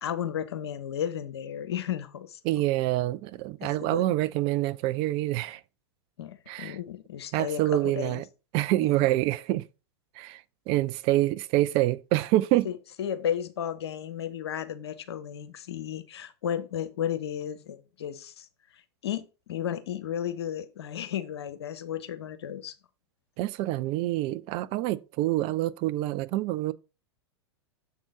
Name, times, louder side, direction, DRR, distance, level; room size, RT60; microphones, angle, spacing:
voice 1, 0.0-2.4 3.6-4.0 6.2-8.2 8.8-9.1 12.6-18.5 19.0-22.7, left 9 dB, 70° left, 0.9 m, -34 dB
voice 2, 2.4-5.6 6.5-6.8 7.3-8.2 8.5-9.6 10.2-10.4 10.7-12.7 23.4-26.7, right 16 dB, 40° right, 0.5 m, -26 dB
7.2 x 3.8 x 4.9 m
figure-of-eight pair, 95°, 14 cm